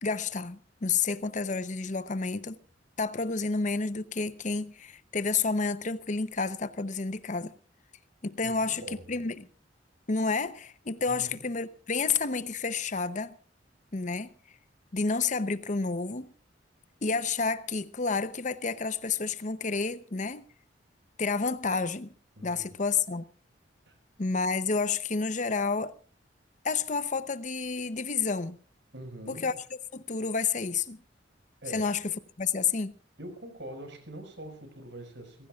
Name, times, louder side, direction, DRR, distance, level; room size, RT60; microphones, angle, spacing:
voice 1, 0.0-2.6 3.0-7.5 8.2-9.5 10.1-13.3 13.9-14.3 14.9-16.3 17.0-20.4 21.2-22.1 22.4-23.2 24.2-25.9 26.6-28.6 29.3-29.5 29.9-31.0 31.7-32.0 32.4-32.9, left 4 dB, 40° left, 0.8 m, -30 dB
voice 2, 8.4-9.0 11.1-11.4 22.4-22.8 23.9-24.0 28.9-29.5 31.6-32.0 33.2-35.5, right 1 dB, 70° right, 5.4 m, -44 dB
28.5 x 16.0 x 2.4 m
head